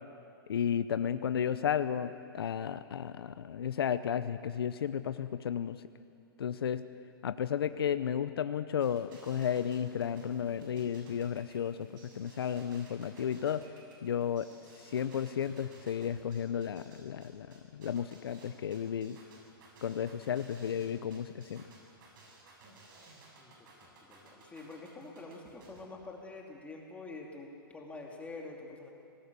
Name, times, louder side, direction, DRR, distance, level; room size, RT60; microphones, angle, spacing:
voice 1, 0.5-5.8 6.4-6.8 7.2-11.9 12.1-13.6 14.0-14.5 14.8-17.5 17.7-19.2 19.8-21.6, left 8 dB, 80° left, 12 dB, 0.8 m, -33 dB
sound 1, 8.8-25.8, right 3 dB, 60° right, 7.8 m, -57 dB
voice 2, 23.8-28.9, left 3 dB, 10° left, -1 dB, 2.6 m, -46 dB
24.5 x 19.0 x 6.9 m, 2.4 s
hypercardioid pair, 125°, 12 cm